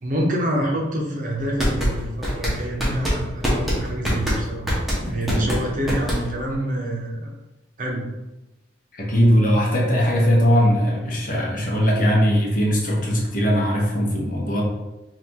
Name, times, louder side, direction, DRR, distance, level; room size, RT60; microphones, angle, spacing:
voice 1, 0.0-4.7 5.0-7.3 7.8-8.1, right 1 dB, 45° right, -1 dB, 0.7 m, -27 dB
sound 1, 1.4-6.5, equal, ahead, 0.9 m, -24 dB
voice 2, 5.0-5.5 8.9-14.6, equal, 45° left, -3 dB, 0.9 m, -20 dB
5.6 x 2.5 x 2.9 m, 1.0 s
head